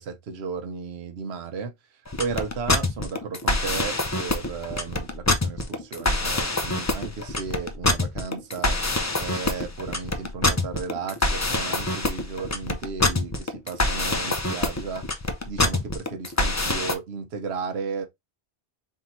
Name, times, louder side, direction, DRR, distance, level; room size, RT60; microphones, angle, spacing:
voice 1, 0.0-8.8 9.2-15.0 15.5-18.1, right 5 dB, 75° right, 1.1 m, -34 dB
sound 1, 2.1-16.9, left 2 dB, 20° left, 0.5 m, -25 dB
3.6 x 2.6 x 4.2 m
omnidirectional pair, 1.1 m